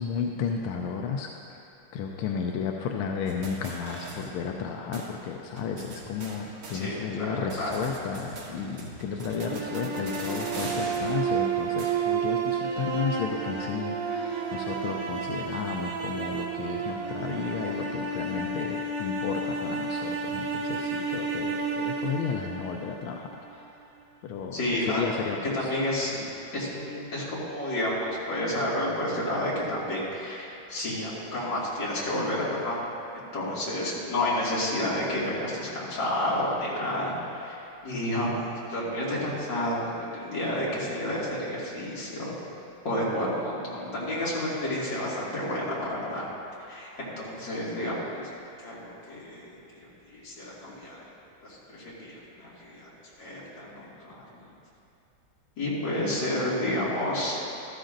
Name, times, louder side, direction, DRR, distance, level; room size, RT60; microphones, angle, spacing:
voice 1, 0.0-1.6 1.9-23.7 24.2-25.7, left 6 dB, 90° left, 2 dB, 1.5 m, -33 dB
sound 1, 3.3-4.7 4.9-5.1 5.6-7.2 7.5-12.3, right 3 dB, 85° right, 2.2 m, -41 dB
voice 2, 6.7-7.7 24.5-25.0 25.5-26.2 26.5-32.8 33.1-42.3 42.8-46.2 46.7-48.3 48.6-51.0 51.4-52.9 53.2-54.2 55.6-57.4, left 1 dB, 60° left, -7 dB, 3.0 m, -30 dB
sound 2, 9.3-23.4, right 5 dB, 60° right, 1.5 m, -31 dB
13.5 x 13.0 x 2.6 m, 2.7 s
omnidirectional pair, 2.3 m